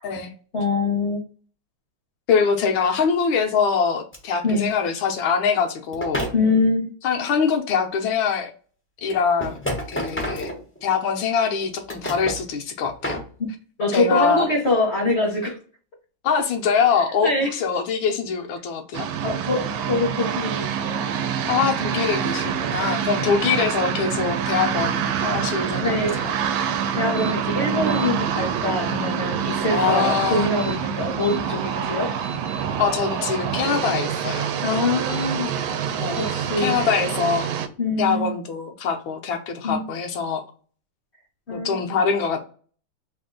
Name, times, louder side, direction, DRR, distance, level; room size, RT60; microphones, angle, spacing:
voice 1, 0.5-1.2 4.4-4.7 6.3-6.9 13.4-13.5 13.8-15.6 17.2-17.5 19.2-21.1 23.0-23.3 25.8-26.2 26.9-32.1 34.6-35.5 36.2-37.0 37.8-38.3 39.6-39.9 41.5-42.0, left 2 dB, 45° left, 0 dB, 0.9 m, -24 dB
voice 2, 2.3-6.2 7.0-8.5 9.0-9.6 9.9-10.5 10.8-13.2 13.9-14.5 16.2-19.1 21.5-26.0 26.2-26.3 29.7-30.5 32.8-34.5 36.0-36.3 36.6-37.5 38.0-40.4 41.5-42.5, left 6 dB, 75° left, 4 dB, 1.5 m, -23 dB
sound 1, 4.1-4.2 5.9-6.4 8.1-8.2 9.1-11.1 11.6-12.4 12.8-13.3, equal, 15° left, 0.3 m, -29 dB
sound 2, 18.9-37.7, right 8 dB, 80° right, 1.3 m, -26 dB
sound 3, 27.1-27.3 27.7-28.1 30.4-31.4 31.9-32.6 35.0-35.3 36.1-36.3, right 1 dB, 50° right, 1.0 m, -40 dB
3.6 x 2.4 x 3.7 m, 0.40 s
omnidirectional pair, 2.2 m